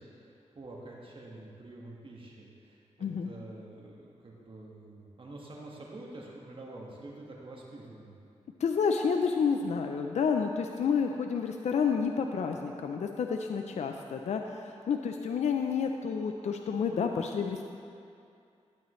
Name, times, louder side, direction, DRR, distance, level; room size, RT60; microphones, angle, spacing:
voice 1, 0.0-8.1, right 2 dB, 45° right, -3 dB, 1.7 m, -47 dB
voice 2, 3.0-3.3 8.6-17.6, left 6 dB, 75° left, 4 dB, 0.5 m, -30 dB
12.0 x 9.0 x 3.1 m, 2.5 s
cardioid pair, 65°, 12 cm